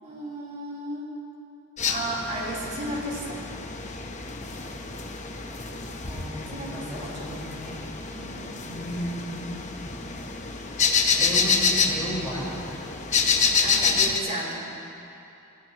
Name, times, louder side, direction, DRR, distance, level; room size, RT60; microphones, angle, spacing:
voice 1, 0.0-1.1 1.9-3.5 6.5-6.7 7.0-7.3 8.1-8.9 13.6-14.7, right 1 dB, 35° right, -5 dB, 3.7 m, -34 dB
sound 1, 1.8-14.2, left 5 dB, 35° left, 0.9 m, -27 dB
voice 2, 6.0-7.8 8.6-10.0 11.2-12.5, equal, ahead, -10 dB, 4.6 m, -34 dB
26.0 x 15.0 x 3.0 m, 2.8 s
head